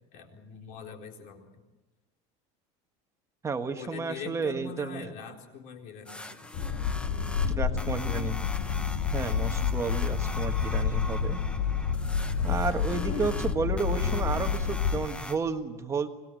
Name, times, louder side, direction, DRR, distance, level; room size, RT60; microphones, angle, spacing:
voice 1, 0.1-1.6 3.7-6.5 8.7-8.9, left 5 dB, 60° left, 2 dB, 4.1 m, -43 dB
voice 2, 3.4-5.1 7.6-8.3 9.1-11.4 12.4-16.1, right 5 dB, 15° right, 7 dB, 1.5 m, -32 dB
sound 1, 6.0-15.4, left 1 dB, 5° left, 0.9 m, -42 dB
sound 2, 6.5-15.1, left 6 dB, 80° left, 2.0 m, -29 dB
25.5 x 19.5 x 7.7 m, 1.1 s
cardioid pair, 155°, 17 cm